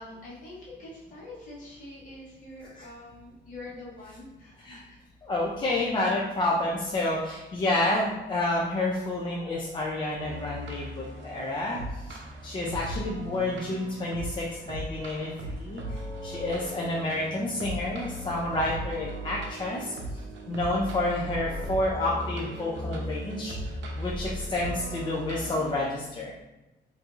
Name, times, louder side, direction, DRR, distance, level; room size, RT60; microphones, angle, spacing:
voice 1, 0.0-5.0, left 2 dB, 45° left, -6 dB, 1.2 m, -45 dB
voice 2, 5.2-11.8 12.1-12.2 12.4-19.9 20.5-26.3, left 2 dB, 25° left, -4 dB, 0.4 m, -29 dB
sound 1, 10.2-25.8, right 1 dB, 75° right, 0.6 m, -37 dB
4.3 x 2.6 x 2.4 m, 1.0 s
cardioid pair, 175°, 19 cm